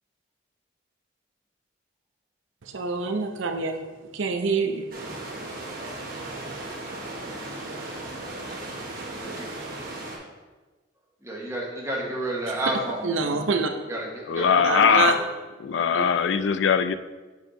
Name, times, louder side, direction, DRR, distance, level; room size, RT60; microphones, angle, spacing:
voice 1, 2.6-3.8 4.1-4.9 12.5-12.6 13.0-13.7 14.6-15.1 15.9-16.0, right 4 dB, 85° right, 5 dB, 0.6 m, -26 dB
sound 1, 4.9-10.2, right 2 dB, 50° right, 1.1 m, -36 dB
voice 2, 11.2-13.3 13.9-15.0, right 1 dB, 15° right, -2 dB, 1.0 m, -31 dB
voice 3, 14.2-15.2 15.6-16.9, left 7 dB, 65° left, 12 dB, 0.3 m, -21 dB
7.0 x 4.6 x 3.8 m, 1.3 s
head